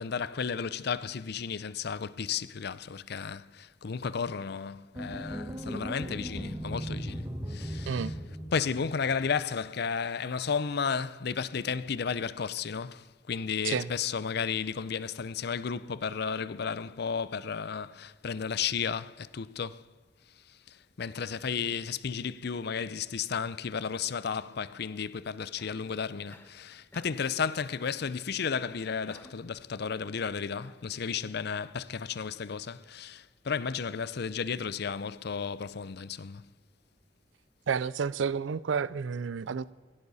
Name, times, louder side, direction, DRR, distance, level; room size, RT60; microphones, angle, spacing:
voice 1, 0.0-8.1 8.5-19.8 20.7-36.5, left 6 dB, 60° left, 0.5 m, -33 dB
sound 1, 5.0-9.2, equal, 20° right, 1.5 m, -37 dB
Cough, 25.6-25.9 26.3-26.6 26.9-27.3 29.1-29.5 30.1-30.9, left 1 dB, 10° left, 1.2 m, -54 dB
voice 2, 37.7-39.7, right 6 dB, 85° right, 0.4 m, -30 dB
17.0 x 17.0 x 4.1 m
head